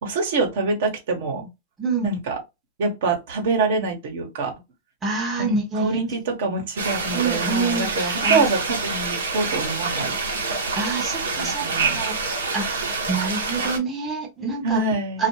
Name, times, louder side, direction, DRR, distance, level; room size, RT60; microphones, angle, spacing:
voice 1, 0.0-1.5 2.0-2.4 2.8-4.5 5.4-10.2 11.3-12.0 14.6-15.3, right 3 dB, 65° right, 1.0 m, -25 dB
voice 2, 5.0-6.1 7.1-8.5 10.4-14.8 15.2-15.3, right 4 dB, 20° right, 0.8 m, -27 dB
sound 1, 6.8-13.8, right 4 dB, 85° right, 0.8 m, -26 dB
2.4 x 2.1 x 3.0 m
hypercardioid pair, 110°, 0 cm